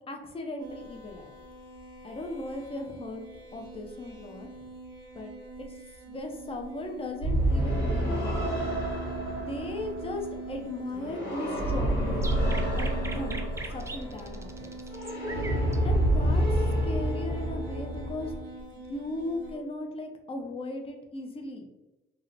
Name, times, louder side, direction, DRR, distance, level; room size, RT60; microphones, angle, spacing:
voice 1, 0.1-1.3 2.0-4.7 5.1-5.3 6.1-8.6 9.5-12.3 12.7-13.4 13.7-14.8 15.4-18.3 18.9-21.7, left 1 dB, 30° left, 3 dB, 0.6 m, -37 dB
sound 1, 0.6-19.6, right 2 dB, 85° right, 0.8 m, -44 dB
sound 2, 7.2-18.4, right 1 dB, 85° left, 1.3 m, -28 dB
sound 3, 12.2-15.8, right 3 dB, 15° right, 0.3 m, -40 dB
2.8 x 2.1 x 3.9 m, 1.0 s
cardioid pair, 90°, 20 cm